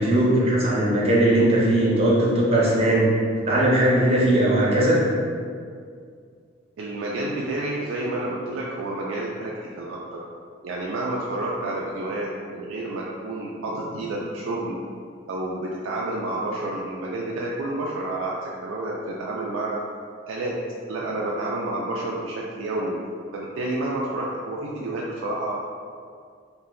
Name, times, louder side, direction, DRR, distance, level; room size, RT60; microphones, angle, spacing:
voice 1, 0.0-3.1 3.4-5.1, right 1 dB, 30° right, -5 dB, 0.6 m, -19 dB
voice 2, 6.8-10.2 10.6-14.8 15.3-19.8 20.3-20.6 20.9-23.0 23.3-25.5, right 2 dB, 90° right, -4 dB, 0.3 m, -29 dB
2.6 x 2.1 x 3.8 m, 2.2 s
head